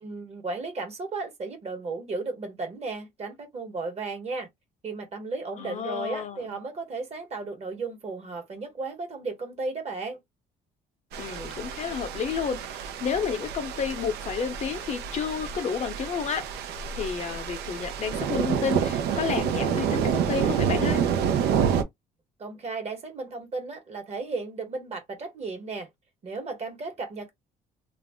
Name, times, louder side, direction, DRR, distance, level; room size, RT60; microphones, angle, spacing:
voice 1, 0.0-4.5 4.8-10.2 22.4-25.9 26.2-27.3, right 3 dB, 40° right, 1.2 m, -34 dB
voice 2, 5.6-6.6 11.2-16.4 16.9-21.0, left 6 dB, 45° left, 0.6 m, -31 dB
sound 1, 11.1-21.8, right 8 dB, 75° right, 0.6 m, -28 dB
2.4 x 2.0 x 3.4 m
cardioid pair, 110°, 17 cm